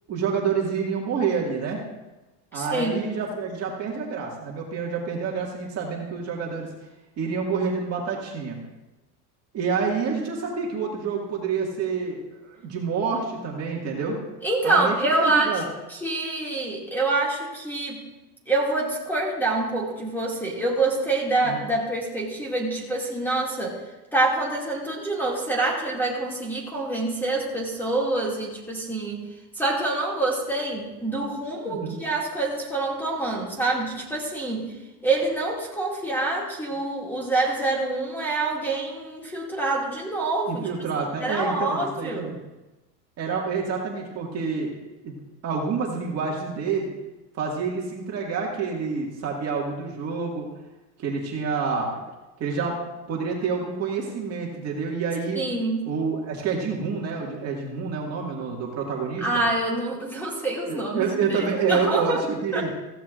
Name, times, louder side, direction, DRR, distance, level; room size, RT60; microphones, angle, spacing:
voice 1, 0.1-1.8 2.5-6.7 7.2-8.6 9.5-14.2 14.6-14.9 15.2-15.6 21.4-21.6 31.7-32.0 40.5-42.4 43.2-44.8 45.0-45.2 45.4-46.9 47.3-50.5 51.0-52.0 52.4-52.8 53.1-55.4 55.9-59.4 60.7-62.7, right 5 dB, 30° right, -2 dB, 2.0 m, -28 dB
voice 2, 2.5-3.1 14.4-15.5 16.0-18.0 18.5-23.8 24.1-29.2 29.5-34.7 35.0-40.7 41.2-42.3 55.4-55.9 59.2-62.2 62.5-62.7, right 2 dB, 5° left, -3 dB, 2.3 m, -26 dB
15.5 x 15.0 x 2.5 m, 1.1 s
supercardioid pair, 150°, 49 cm